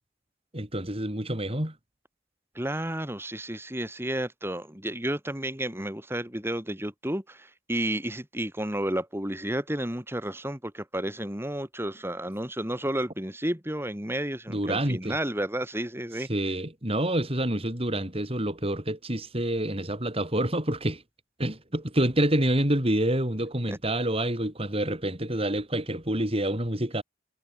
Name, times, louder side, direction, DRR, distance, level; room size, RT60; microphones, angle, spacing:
voice 1, 0.5-1.7 14.5-15.2 16.3-21.0 21.4-27.0, right 1 dB, 30° right, 5.1 m, -27 dB
voice 2, 2.6-16.3 23.7-23.8, right 1 dB, 15° right, 5.2 m, -31 dB
head